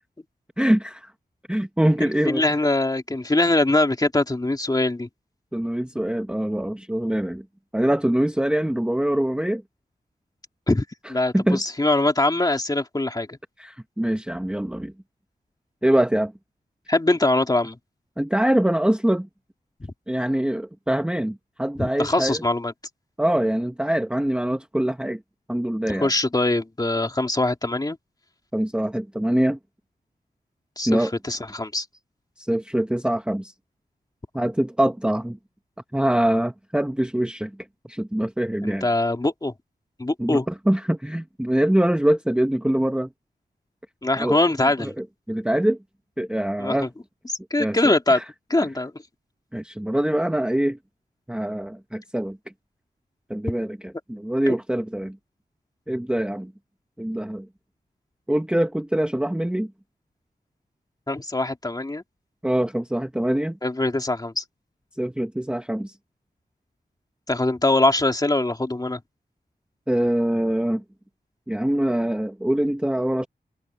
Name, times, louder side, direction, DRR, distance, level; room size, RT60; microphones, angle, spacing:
voice 1, 0.6-1.1 1.5-2.4 5.5-7.5 7.7-9.6 11.3-11.6 13.6-14.9 15.8-16.3 18.2-19.3 20.1-22.4 23.2-25.2 25.5-26.1 28.5-29.6 30.9-31.1 32.4-33.5 34.3-35.4 35.9-37.6 37.9-38.9 40.2-43.1 44.2-45.8 46.2-46.9 47.6-48.2 49.5-50.8 51.3-52.4 53.3-55.2 55.9-56.5 57.0-57.5 58.3-59.7 62.4-63.6 65.0-66.0 69.9-70.8 71.5-73.3, right 1 dB, 5° right, 0.9 m, -24 dB
voice 2, 2.0-5.1 10.7-13.4 16.9-17.8 19.8-19.9 21.8-22.7 26.0-28.0 30.8-31.0 31.3-31.9 38.6-39.5 40.0-40.5 44.0-44.9 46.6-46.9 47.5-48.2 48.5-48.9 54.5-54.6 61.1-62.0 63.6-64.4 67.3-69.0, left 2 dB, 25° left, 2.4 m, -22 dB
wide cardioid pair, 90°, 17 cm